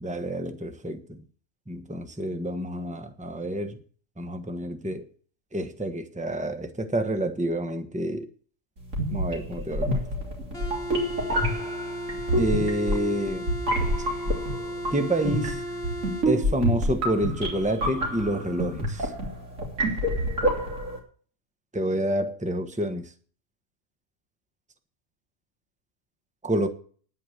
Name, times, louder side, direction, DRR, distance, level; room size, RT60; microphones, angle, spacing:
voice 1, 0.0-1.2 1.7-3.8 4.2-5.0 5.5-8.3 9.1-10.0 12.4-13.5 14.9-15.6 16.2-19.1 21.7-23.1 26.4-26.7, right 1 dB, 5° right, 1.2 m, -28 dB
sound 1, 8.9-21.0, equal, 85° right, 3.6 m, -28 dB
sound 2, 10.5-16.3, equal, 50° left, 2.6 m, -35 dB
10.5 x 8.6 x 7.9 m
omnidirectional pair, 1.3 m